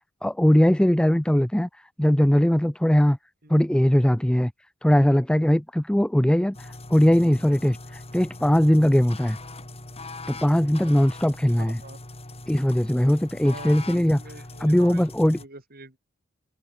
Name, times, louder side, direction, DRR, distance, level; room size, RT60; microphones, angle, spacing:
voice 1, 0.2-1.7 2.0-3.2 3.5-4.5 4.8-9.4 10.3-11.8 12.5-14.2 14.6-15.4, equal, 5° left, 0.4 m, -20 dB
sound 1, 6.5-15.5, left 2 dB, 30° left, 5.7 m, -41 dB
voice 2, 11.6-12.0 13.4-15.0 15.3-16.0, right 2 dB, 45° right, 5.6 m, -44 dB
head